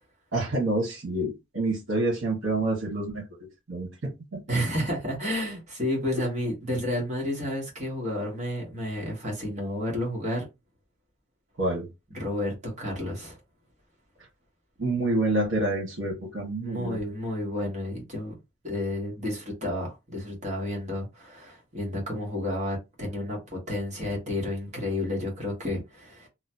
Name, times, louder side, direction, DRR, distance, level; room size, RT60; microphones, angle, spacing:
voice 1, 0.3-3.2 3.7-4.6 6.1-6.2 11.6-11.9 14.8-17.0, right 2 dB, 75° right, 1.3 m, -28 dB
voice 2, 4.5-10.4 12.1-13.4 16.6-18.3 18.6-26.3, left 1 dB, 35° right, 1.3 m, -31 dB
3.0 x 2.2 x 2.7 m
head